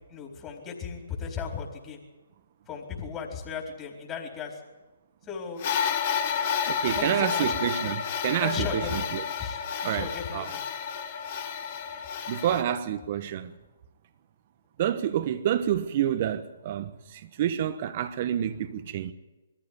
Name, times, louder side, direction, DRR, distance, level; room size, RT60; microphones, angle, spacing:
voice 1, 0.1-2.0 2.7-4.6 5.2-5.6 6.9-7.6 8.4-9.1 9.4-9.6 9.9-10.6, left 6 dB, 20° left, 4.1 m, -35 dB
sound 1, 5.6-12.6, left 7 dB, 40° left, 1.9 m, -31 dB
voice 2, 6.7-9.2 9.8-10.5 12.3-13.5 14.8-19.1, right 10 dB, 45° right, 1.2 m, -28 dB
22.0 x 15.0 x 9.6 m
hypercardioid pair, 140°, 0 cm